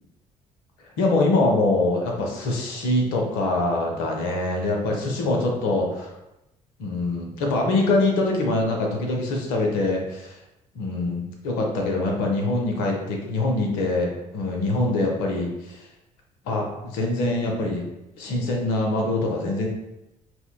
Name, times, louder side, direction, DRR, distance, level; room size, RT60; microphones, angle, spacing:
voice 1, 1.0-6.1 6.8-10.4 10.7-15.9 16.5-17.8 18.2-19.7, left 2 dB, 70° left, 1 dB, 0.7 m, -24 dB
4.4 x 2.1 x 2.2 m, 0.92 s
figure-of-eight pair, 50°, 19 cm